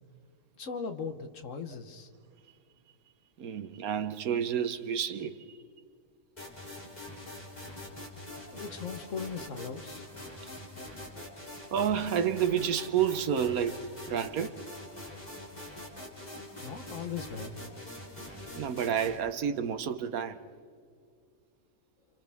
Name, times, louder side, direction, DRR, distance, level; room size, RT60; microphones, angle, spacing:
voice 1, 0.6-2.1 8.5-10.0 16.6-17.5, left 6 dB, 65° left, 1.4 m, -38 dB
voice 2, 3.4-5.6 11.7-14.6 18.5-20.4, right 8 dB, 90° right, 1.4 m, -30 dB
sound 1, 6.4-19.2, left 1 dB, 30° left, 3.5 m, -44 dB
29.5 x 28.0 x 3.5 m
omnidirectional pair, 1.5 m